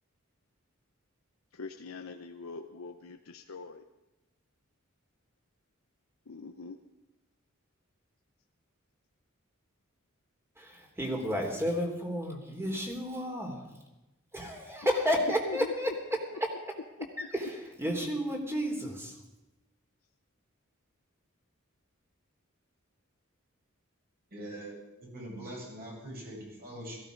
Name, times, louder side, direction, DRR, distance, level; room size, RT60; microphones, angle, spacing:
voice 1, 1.5-3.8 6.3-6.8 15.5-15.7, left 4 dB, 80° left, 5 dB, 0.8 m, -42 dB
voice 2, 10.6-13.7 14.3-15.9 16.4-16.5 17.3-19.2, equal, 10° right, 1 dB, 3.3 m, -31 dB
voice 3, 24.3-27.0, right 1 dB, 50° right, -4 dB, 7.9 m, -43 dB
17.5 x 15.5 x 5.2 m, 1.0 s
head